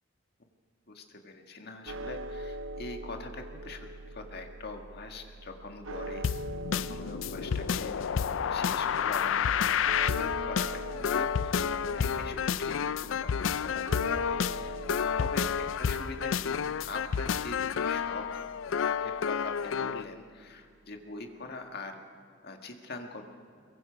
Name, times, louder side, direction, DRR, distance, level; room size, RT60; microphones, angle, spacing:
voice 1, 0.9-6.3 6.7-18.4 19.0-22.0 22.4-23.2, left 3 dB, 55° left, 4 dB, 1.7 m, -43 dB
sound 1, 1.9-20.1, right 1 dB, 85° right, 0.6 m, -43 dB
sound 2, 6.2-20.1, left 7 dB, 75° left, 0.4 m, -30 dB
22.5 x 22.5 x 5.1 m, 2.1 s
head